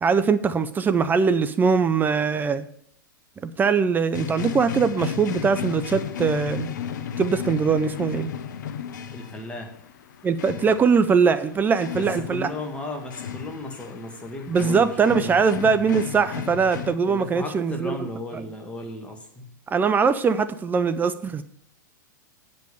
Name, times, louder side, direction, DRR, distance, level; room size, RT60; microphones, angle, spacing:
voice 1, 0.0-2.7 3.4-6.7 7.2-8.3 10.2-12.5 14.5-18.0 18.3-18.4 19.7-21.4, right 5 dB, 15° right, 12 dB, 0.5 m, -21 dB
sound 1, 4.1-17.0, left 8 dB, 65° left, 0.7 m, -34 dB
voice 2, 9.1-9.7 11.9-15.4 17.1-19.5, left 2 dB, 10° left, 3 dB, 1.9 m, -35 dB
9.0 x 5.4 x 6.9 m, 0.68 s
hypercardioid pair, 100°, 11 cm